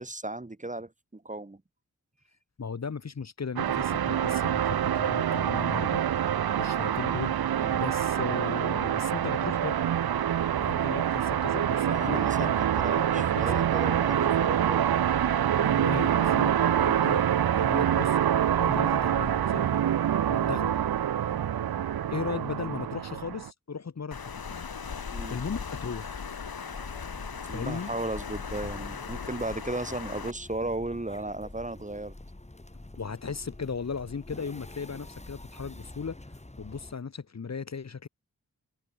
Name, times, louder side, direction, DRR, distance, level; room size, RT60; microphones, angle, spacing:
voice 1, 0.0-1.6 6.6-6.8 7.6-7.8 11.9-15.0 20.4-20.6 25.1-25.4 27.4-32.1, right 2 dB, 20° right, 1.3 m, -35 dB
voice 2, 2.6-6.0 6.6-7.3 7.7-9.8 10.6-12.5 13.0-13.1 13.5-13.6 15.6-17.3 17.6-18.2 18.6-19.7 20.3-20.8 22.1-24.7 25.3-26.3 27.5-27.9 33.0-36.2 36.6-38.1, left 5 dB, 45° left, 1.0 m, -36 dB
sound 1, 3.6-23.5, right 10 dB, 85° right, 0.7 m, -26 dB
Water, 24.1-30.3, left 6 dB, 80° left, 3.4 m, -38 dB
sound 2, 26.7-36.9, left 2 dB, 20° left, 2.9 m, -47 dB
wide cardioid pair, 60°, 36 cm